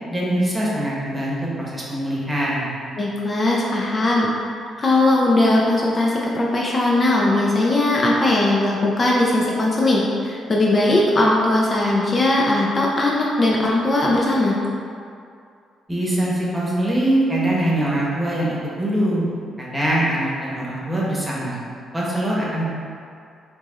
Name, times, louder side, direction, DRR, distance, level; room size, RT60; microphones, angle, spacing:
voice 1, 0.1-2.7 15.9-19.2 19.6-21.5 21.9-22.6, right 1 dB, 15° right, -6 dB, 1.0 m, -23 dB
voice 2, 3.0-4.3 4.8-14.5, left 2 dB, 35° left, -3 dB, 0.4 m, -19 dB
4.5 x 2.9 x 2.4 m, 2.4 s
cardioid pair, 90°, 0 cm